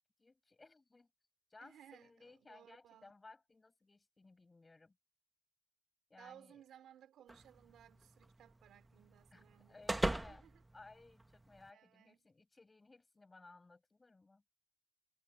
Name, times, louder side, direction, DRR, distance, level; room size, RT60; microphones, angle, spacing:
voice 1, 0.2-1.1 1.5-5.0 6.1-6.6 9.3-10.5 10.7-14.4, left 3 dB, 15° left, 6.7 m, -60 dB
voice 2, 1.6-3.1 6.2-10.6 11.7-12.3, right 10 dB, 60° right, 3.6 m, -61 dB
sound 1, 7.3-11.7, right 1 dB, 10° right, 1.1 m, -42 dB
cardioid pair, 175°, 0 cm